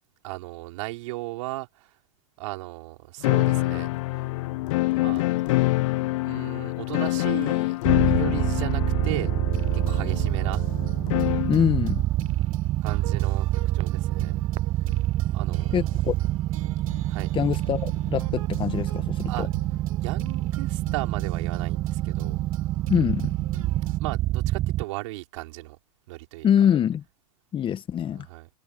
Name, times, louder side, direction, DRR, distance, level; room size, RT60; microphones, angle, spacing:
voice 1, 0.2-2.0 2.4-3.9 4.1-4.3 4.9-5.3 6.2-7.8 8.0-9.3 9.7-10.7 12.8-14.4 15.3-15.9 17.1-17.3 19.3-19.5 20.0-22.4 24.0-25.8 26.1-26.5 28.1-28.5, right 21 dB, 60° right, 4.8 m, -36 dB
sound 1, 3.2-11.6, left 20 dB, 60° left, 0.6 m, -25 dB
sound 2, 7.8-24.8, right 15 dB, 30° right, 0.6 m, -26 dB
sound 3, 9.5-24.0, right 11 dB, 75° right, 7.7 m, -42 dB
voice 2, 11.5-12.0 15.7-16.1 17.3-19.5 22.9-23.3 26.4-27.0 27.5-28.3, left 9 dB, 30° left, 1.9 m, -24 dB
hypercardioid pair, 105°, 18 cm